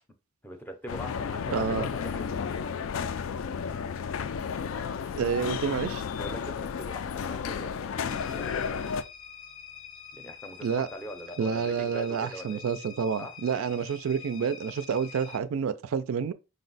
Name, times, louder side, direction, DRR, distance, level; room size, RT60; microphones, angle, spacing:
voice 1, 0.4-2.5 6.2-9.0 10.1-12.6 13.2-13.3, equal, 10° left, 0.5 m, -42 dB
sound 1, 0.9-9.0, left 6 dB, 70° left, 0.3 m, -33 dB
voice 2, 1.5-1.8 5.2-6.0 10.6-10.9 11.4-16.3, right 6 dB, 75° right, 0.3 m, -29 dB
sound 2, 8.0-15.4, left 7 dB, 85° left, 1.0 m, -46 dB
5.2 x 2.1 x 3.9 m
head